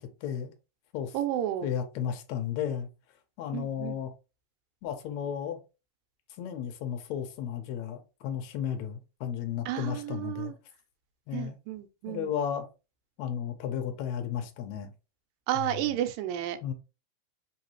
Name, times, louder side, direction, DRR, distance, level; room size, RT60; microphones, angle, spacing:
voice 1, 0.2-0.5 0.9-1.2 1.6-2.9 3.4-4.1 4.8-5.6 6.4-10.5 11.3-11.6 12.1-12.7 13.2-14.9 15.5-15.7 16.6-16.7, left 8 dB, 80° left, 1.7 m, -33 dB
voice 2, 1.1-1.7 3.5-4.0 9.7-10.5 11.3-12.3 15.5-16.6, right 12 dB, 85° right, 2.3 m, -32 dB
4.8 x 3.1 x 3.0 m
omnidirectional pair, 3.9 m